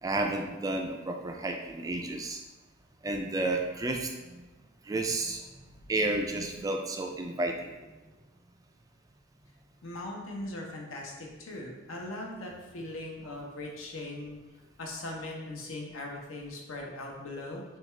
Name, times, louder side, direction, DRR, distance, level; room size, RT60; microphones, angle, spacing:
voice 1, 0.0-2.4 3.0-4.4 4.9-5.4 5.9-7.7, right 2 dB, 15° right, 3 dB, 0.3 m, -31 dB
voice 2, 9.8-14.4 14.8-17.6, left 2 dB, 75° left, 0 dB, 0.9 m, -40 dB
6.1 x 2.3 x 3.2 m, 1.2 s
head